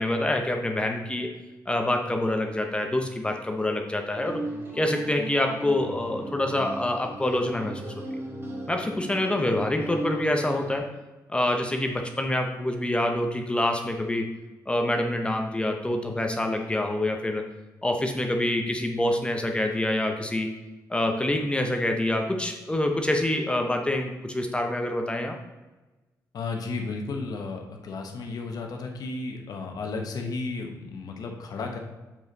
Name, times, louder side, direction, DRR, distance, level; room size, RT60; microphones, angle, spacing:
voice 1, 0.0-1.3 1.7-4.4 4.7-7.9 8.7-10.9 11.3-14.3 14.7-17.4 17.8-20.5 20.9-25.4, left 1 dB, 15° left, 3 dB, 0.7 m, -26 dB
sound 1, 4.2-10.8, right 1 dB, 35° right, 1.6 m, -36 dB
voice 2, 26.3-31.8, left 3 dB, 65° left, 2 dB, 1.0 m, -33 dB
7.2 x 5.3 x 4.0 m, 1.1 s
cardioid pair, 105°, 7 cm